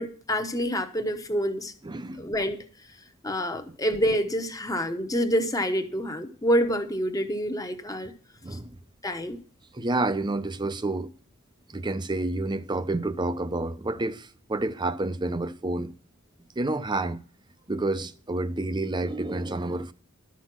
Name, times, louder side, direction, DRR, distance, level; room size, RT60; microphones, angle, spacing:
voice 1, 0.0-1.7 2.2-2.6 3.2-8.1 8.5-8.6 9.0-9.4, equal, 15° left, 1.0 m, -27 dB
voice 2, 1.8-2.3 8.4-8.8 9.7-11.1 11.7-15.9 16.6-17.2 17.7-19.9, right 2 dB, 20° right, 0.6 m, -29 dB
12.0 x 6.2 x 6.0 m
head